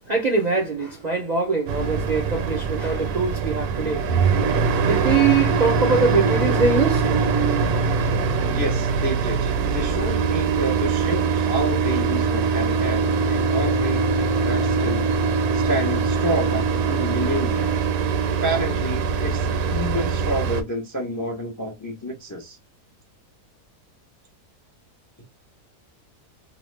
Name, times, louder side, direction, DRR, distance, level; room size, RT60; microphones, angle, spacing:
voice 1, 0.1-4.0 4.6-7.1, right 4 dB, 55° right, 0.5 m, -23 dB
sound 1, 1.7-20.6, right 5 dB, 75° right, 1.1 m, -22 dB
voice 2, 8.5-14.1 14.4-15.1 15.5-17.7 18.4-22.6, equal, 25° left, 0.3 m, -29 dB
2.9 x 2.0 x 3.1 m
omnidirectional pair, 1.7 m